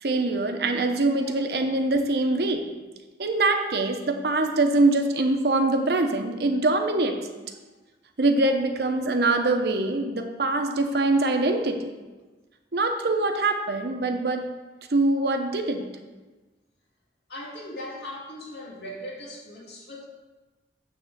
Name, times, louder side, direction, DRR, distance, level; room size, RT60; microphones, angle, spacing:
voice 1, 0.0-2.7 3.2-7.2 8.2-11.9 12.7-14.4 14.9-15.9, right 2 dB, 65° right, 5 dB, 0.8 m, -23 dB
voice 2, 17.3-20.1, left 1 dB, 75° left, -4 dB, 2.1 m, -39 dB
8.6 x 3.6 x 6.7 m, 1.2 s
head